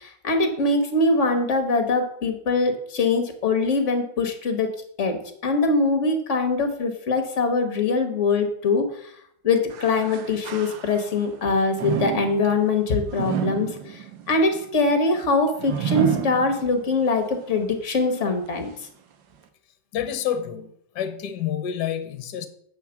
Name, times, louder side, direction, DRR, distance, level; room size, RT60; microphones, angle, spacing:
voice 1, 0.0-4.7 5.0-9.1 9.4-18.7, left 3 dB, 45° left, 1.5 m, -23 dB
sound 1, 9.7-11.3 11.7-17.0 17.5-17.6 18.5-18.6, right 9 dB, 85° right, 1.6 m, -30 dB
voice 2, 19.9-22.5, left 9 dB, 70° left, 1.3 m, -28 dB
8.2 x 4.4 x 7.0 m
omnidirectional pair, 2.0 m